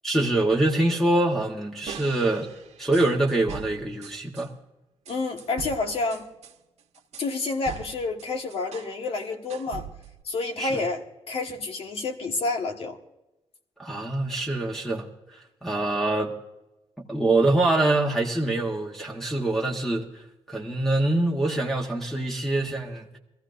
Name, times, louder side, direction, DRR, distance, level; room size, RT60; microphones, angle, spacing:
voice 1, 0.0-2.5 2.8-4.5 10.6-10.8 13.8-15.1 15.6-16.3 17.1-20.1 20.5-23.2, right 2 dB, 5° left, 1 dB, 1.2 m, -24 dB
sound 1, 1.9-4.5 5.1-8.9 9.2-10.2, right 7 dB, 80° right, 1.2 m, -42 dB
voice 2, 5.1-6.3 7.2-9.9 10.2-13.0, left 3 dB, 60° left, 4 dB, 1.6 m, -29 dB
21.5 x 15.0 x 2.6 m, 0.99 s
wide cardioid pair, 150°, 11 cm